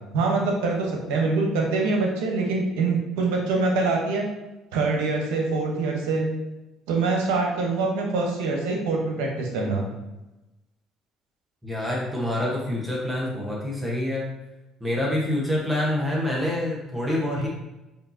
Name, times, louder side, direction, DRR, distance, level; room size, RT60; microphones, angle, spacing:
voice 1, 0.1-4.3 4.7-6.3 6.9-9.9, right 3 dB, 85° right, 0 dB, 1.0 m, -24 dB
voice 2, 11.6-14.3 14.8-17.5, left 1 dB, 15° right, -4 dB, 1.1 m, -26 dB
5.1 x 2.7 x 2.8 m, 1.0 s
supercardioid pair, 80°, 0 cm